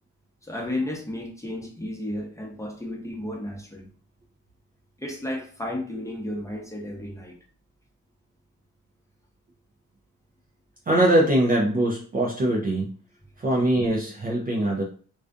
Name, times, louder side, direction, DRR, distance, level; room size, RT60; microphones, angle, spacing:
voice 1, 0.4-3.9 5.0-7.4, left 1 dB, 10° left, -1 dB, 0.7 m, -33 dB
voice 2, 10.9-12.9 13.4-14.8, right 1 dB, 25° right, -2 dB, 0.4 m, -22 dB
2.4 x 2.3 x 2.4 m, 0.42 s
cardioid pair, 85°, 35 cm